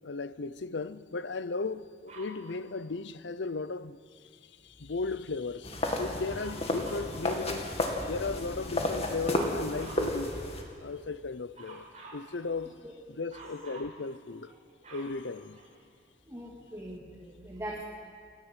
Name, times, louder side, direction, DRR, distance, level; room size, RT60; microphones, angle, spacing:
voice 1, 0.0-4.2 4.6-10.5 10.8-11.9 12.1-12.8 13.1-14.5 14.9-15.6, left 3 dB, 70° left, 0.7 m, -36 dB
Dog, 2.1-2.4 6.2-7.1 9.3-10.1 11.5-12.2 13.3-13.9 14.5-16.0 16.7-16.8, right 2 dB, 40° right, 5.6 m, -49 dB
sound 1, 5.6-10.6, left 1 dB, 35° left, 2.4 m, -32 dB
voice 2, 16.3-17.8, right 1 dB, 15° right, 2.5 m, -41 dB
29.0 x 12.0 x 8.3 m
head